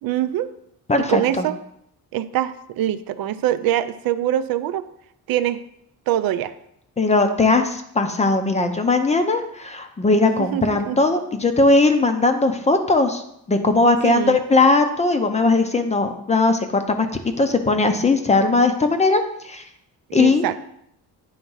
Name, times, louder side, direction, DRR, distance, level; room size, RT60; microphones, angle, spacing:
voice 1, 0.0-0.5 1.0-1.6 2.1-4.8 5.3-5.6 6.1-6.5 10.5-11.0 14.0-14.4 20.2-20.5, right 12 dB, 70° right, 12 dB, 0.5 m, -23 dB
voice 2, 0.9-1.5 7.0-13.2 13.5-17.1 17.4-19.6 20.1-20.4, left 3 dB, 20° left, 7 dB, 0.6 m, -19 dB
9.3 x 3.5 x 5.5 m, 0.76 s
cardioid pair, 140°, 37 cm